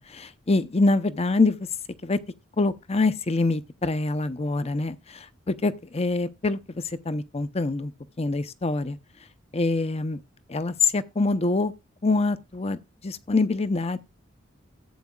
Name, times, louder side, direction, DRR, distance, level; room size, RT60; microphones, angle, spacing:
voice 1, 0.1-1.6 2.0-2.2 2.6-7.9 8.2-9.0 9.5-10.2 10.5-11.7 12.0-12.8 13.0-14.0, left 3 dB, 30° left, 0.7 m, -25 dB
14.5 x 8.4 x 2.3 m
head